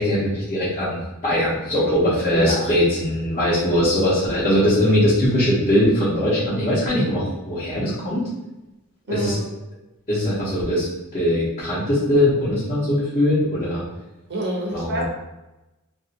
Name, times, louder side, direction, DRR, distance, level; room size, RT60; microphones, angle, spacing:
voice 1, 0.0-8.3 9.1-9.4 10.1-10.9 11.1-13.8 14.7-15.0, left 1 dB, 30° left, -11 dB, 1.0 m, -21 dB
voice 2, 2.3-2.7 9.1-9.4 14.3-15.0, right 1 dB, 50° right, -2 dB, 0.7 m, -26 dB
2.9 x 2.6 x 2.8 m, 0.99 s
head